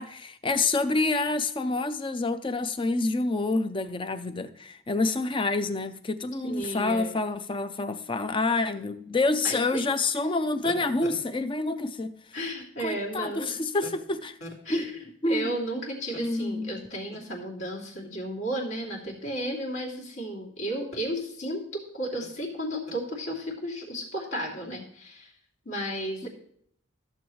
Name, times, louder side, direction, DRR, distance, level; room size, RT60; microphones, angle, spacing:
voice 1, 0.0-12.1 12.8-14.3 14.7-14.8 15.2-15.6 16.2-16.7 26.2-26.3, left 3 dB, 20° left, 0.5 m, -27 dB
voice 2, 6.4-7.1 9.4-9.8 12.3-13.6 14.4-15.0 15.2-25.3 25.6-26.3, right 1 dB, 60° left, 2.8 m, -33 dB
14.5 x 7.1 x 3.1 m
head